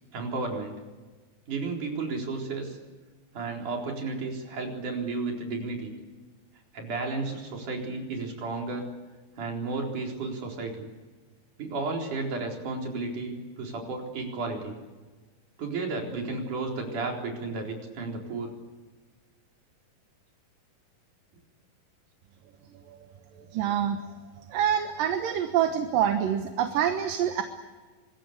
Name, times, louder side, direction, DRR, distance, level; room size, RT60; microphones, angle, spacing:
voice 1, 0.1-0.8 1.5-2.8 3.3-5.9 6.7-8.9 9.4-10.9 11.6-14.8 15.6-18.5, right 3 dB, 60° right, 1 dB, 5.6 m, -33 dB
voice 2, 23.4-24.0 24.5-27.4, right 9 dB, 75° right, 6 dB, 2.9 m, -26 dB
25.5 x 21.0 x 8.5 m, 1.3 s
omnidirectional pair, 4.1 m